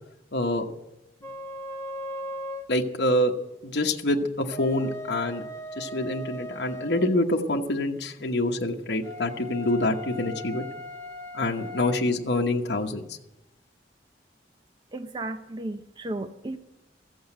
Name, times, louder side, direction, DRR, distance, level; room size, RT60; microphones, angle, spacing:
voice 1, 0.3-0.7 2.7-3.3 3.6-5.5 5.8-10.6 11.3-13.0, left 1 dB, 70° left, 1 dB, 1.1 m, -26 dB
sound 1, 1.2-2.7 4.3-7.2 9.0-12.1, left 1 dB, 15° left, 0.9 m, -38 dB
voice 2, 14.9-16.6, right 2 dB, 25° right, 8 dB, 0.5 m, -34 dB
15.0 x 7.9 x 8.9 m, 0.93 s
head